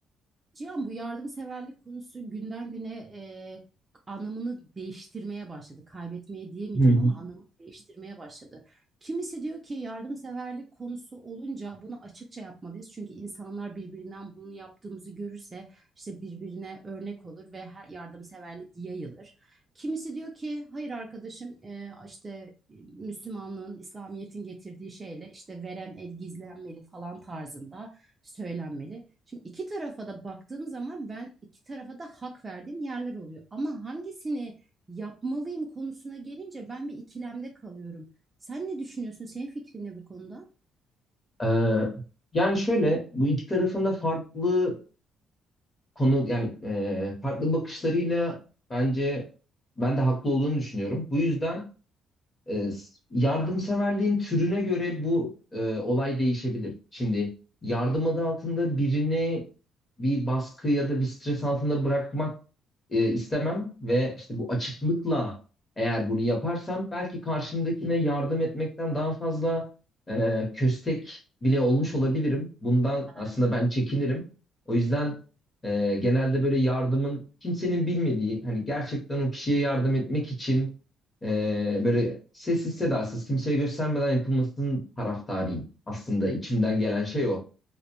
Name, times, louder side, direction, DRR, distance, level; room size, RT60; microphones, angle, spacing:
voice 1, 0.5-3.6 4.1-31.3 31.7-34.6 34.9-38.1 38.4-40.5 73.1-73.3, right 3 dB, 20° right, 0.4 m, -38 dB
voice 2, 6.7-7.1 41.4-41.9 42.3-44.8 46.0-48.4 48.7-49.3 49.8-51.6 52.5-52.9 53.1-57.3 57.6-59.4 60.0-62.3 62.9-65.4 65.8-69.6 70.1-74.2 74.7-75.2 75.6-80.7 81.2-87.4, equal, 20° left, 0.8 m, -26 dB
2.5 x 2.0 x 2.8 m
cardioid pair, 155°, 0 cm